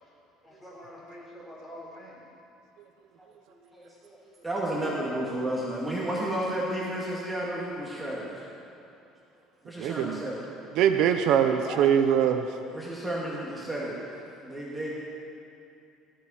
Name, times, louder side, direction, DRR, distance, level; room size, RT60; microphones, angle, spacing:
voice 1, 0.4-2.2 11.4-11.9, left 1 dB, 10° left, -5 dB, 4.3 m, -42 dB
voice 2, 3.5-8.4 9.6-10.5 12.7-14.0 14.4-14.9, right 1 dB, 5° right, -6 dB, 2.1 m, -32 dB
voice 3, 9.8-10.2 10.8-12.5, right 9 dB, 60° right, 7 dB, 0.7 m, -22 dB
17.5 x 14.0 x 4.3 m, 2.7 s
cardioid pair, 155°, 0 cm